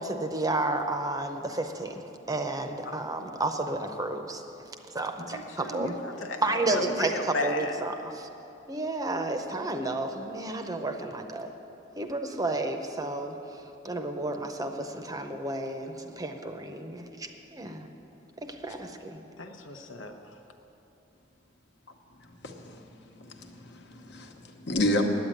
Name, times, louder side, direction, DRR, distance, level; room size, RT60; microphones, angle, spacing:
voice 1, 0.0-2.0 2.3-4.4 4.9-6.0 6.4-8.3 8.7-11.5 12.0-13.4 13.8-17.9 18.4-19.2, right 2 dB, 20° right, 6 dB, 0.7 m, -31 dB
voice 2, 5.3-7.7 19.4-20.2, left 2 dB, 80° left, 4 dB, 1.0 m, -34 dB
voice 3, 22.4-25.1, left 1 dB, 65° left, 3 dB, 1.2 m, -31 dB
9.8 x 8.7 x 8.9 m, 3.0 s
head